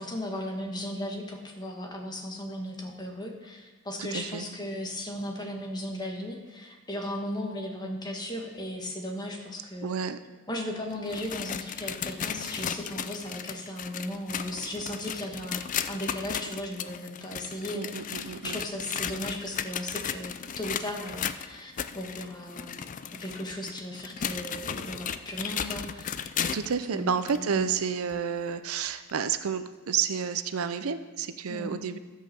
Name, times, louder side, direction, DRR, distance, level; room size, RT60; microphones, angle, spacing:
voice 1, 0.0-10.0 10.5-22.8 23.2-26.4 26.9-27.7 31.5-31.8, left 1 dB, 20° left, 2 dB, 1.5 m, -36 dB
voice 2, 4.0-4.4 9.8-10.2 17.7-18.6 26.5-32.0, right 7 dB, 75° right, 12 dB, 0.5 m, -30 dB
sound 1, 10.9-26.8 27.3-27.4 28.1-28.2 29.1-29.2, left 8 dB, 35° left, 0.4 m, -35 dB
13.0 x 5.6 x 6.9 m, 1.3 s
head